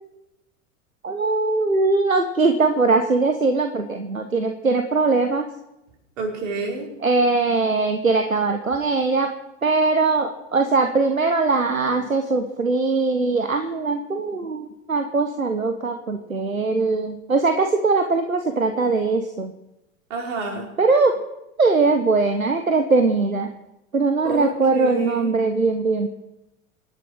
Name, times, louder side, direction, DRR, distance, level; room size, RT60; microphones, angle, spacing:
voice 1, 1.0-5.4 7.0-9.3 9.6-19.5 20.8-21.2 21.6-23.5 23.9-26.1, right 3 dB, 90° right, 7 dB, 1.2 m, -21 dB
voice 2, 6.2-6.9 20.1-20.7 24.2-25.3, right 2 dB, 65° right, 0 dB, 5.1 m, -29 dB
25.5 x 11.0 x 4.7 m, 0.90 s
figure-of-eight pair, 80°, 40 cm